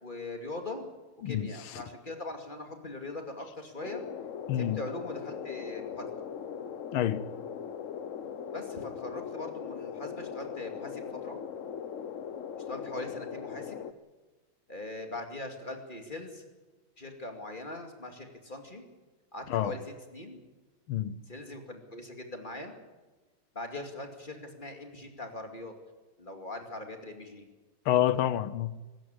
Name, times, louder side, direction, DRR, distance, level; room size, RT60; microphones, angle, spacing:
voice 1, 0.0-0.9 1.2-4.0 4.5-6.2 8.5-11.4 12.7-13.8 14.7-16.5 17.0-18.8 19.3-19.8 20.1-20.4 21.3-22.7 23.5-25.7 26.2-27.5, left 2 dB, 25° left, 2.5 m, -41 dB
sound 1, 3.8-13.9, left 7 dB, 55° left, 0.9 m, -40 dB
voice 2, 4.5-4.8 6.9-7.3 19.5-19.7 20.9-21.2 27.9-28.8, left 11 dB, 85° left, 1.7 m, -28 dB
23.5 x 13.0 x 9.8 m
omnidirectional pair, 2.2 m